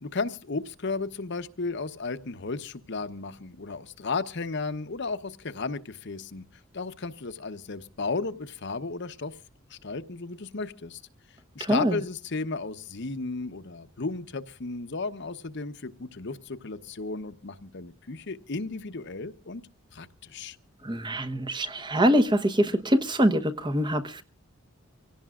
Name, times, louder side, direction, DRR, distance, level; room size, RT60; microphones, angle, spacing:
voice 1, 0.0-6.4 6.7-9.3 9.7-11.0 11.5-19.6 19.9-20.6, left 3 dB, 60° left, 0.9 m, -34 dB
voice 2, 11.6-12.0 20.8-24.2, equal, 25° right, 1.0 m, -24 dB
25.5 x 17.0 x 2.4 m
head